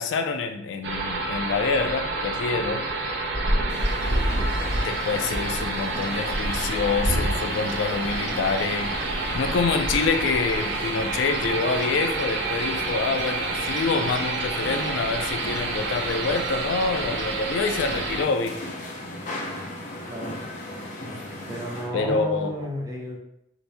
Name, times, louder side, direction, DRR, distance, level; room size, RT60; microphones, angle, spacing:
voice 1, 0.0-2.9 4.8-8.9 9.3-18.7 21.9-22.6, left 4 dB, 85° left, 6 dB, 0.3 m, -26 dB
sound 1, 0.8-18.2, right 2 dB, 80° right, 0.6 m, -28 dB
sound 2, 3.7-21.9, left 1 dB, 45° left, 0.6 m, -37 dB
voice 2, 21.5-23.2, equal, 20° right, -3 dB, 0.7 m, -32 dB
2.8 x 2.6 x 3.3 m, 0.74 s
head